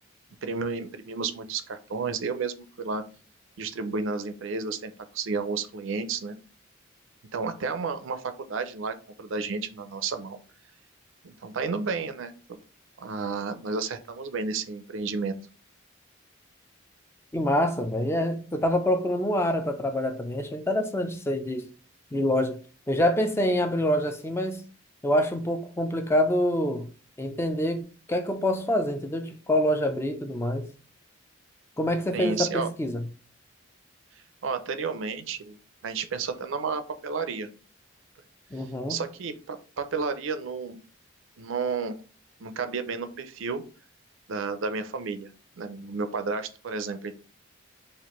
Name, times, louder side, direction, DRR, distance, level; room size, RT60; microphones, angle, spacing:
voice 1, 0.4-3.0 3.6-6.4 7.3-10.4 11.2-12.6 13.0-15.3 32.1-32.7 34.4-35.6 35.8-37.5 38.9-40.8 41.4-41.9 42.4-43.6 44.3-45.3 45.6-47.1, right 4 dB, 75° right, 0.5 m, -32 dB
voice 2, 17.3-21.7 22.1-22.6 22.9-24.6 25.0-26.9 27.2-30.7 31.8-33.0 38.5-39.0, left 1 dB, 10° left, 0.4 m, -26 dB
4.2 x 2.5 x 3.0 m
head